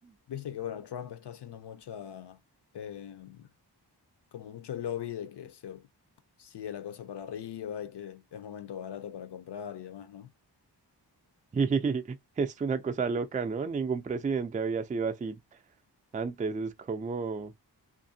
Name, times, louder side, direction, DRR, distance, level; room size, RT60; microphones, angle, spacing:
voice 1, 0.3-2.4 2.7-3.5 4.3-5.9 6.4-10.3, left 9 dB, 75° left, 0.6 m, -40 dB
voice 2, 11.5-15.4 16.1-17.5, right 5 dB, 20° right, 0.3 m, -31 dB
2.7 x 2.5 x 2.6 m
wide cardioid pair, 120°, 42 cm